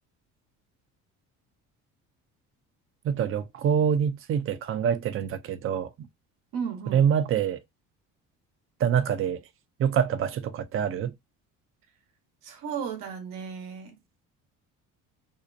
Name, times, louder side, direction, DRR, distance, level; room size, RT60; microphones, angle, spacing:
voice 1, 3.0-6.1 6.9-7.6 8.8-9.4 9.8-11.1, right 8 dB, 40° right, 0.5 m, -25 dB
voice 2, 6.5-7.1 12.4-14.0, right 7 dB, 70° right, 0.9 m, -35 dB
2.6 x 2.1 x 2.5 m
supercardioid pair, 85°, 34 cm